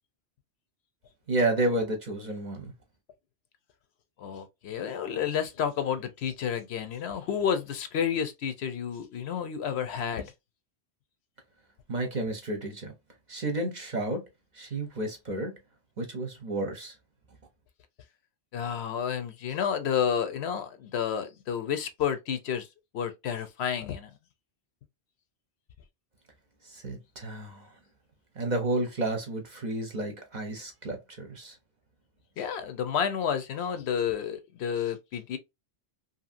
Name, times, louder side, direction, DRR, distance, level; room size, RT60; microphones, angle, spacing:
voice 1, 1.3-2.7 11.9-12.9 13.3-14.2 14.6-15.5 16.0-16.9 26.7-27.7 28.4-31.5, right 2 dB, 45° right, 0.7 m, -31 dB
voice 2, 4.2-10.3 18.5-22.7 22.9-24.1 32.4-35.4, left 8 dB, 70° left, 0.8 m, -30 dB
2.8 x 2.6 x 2.5 m
omnidirectional pair, 1.2 m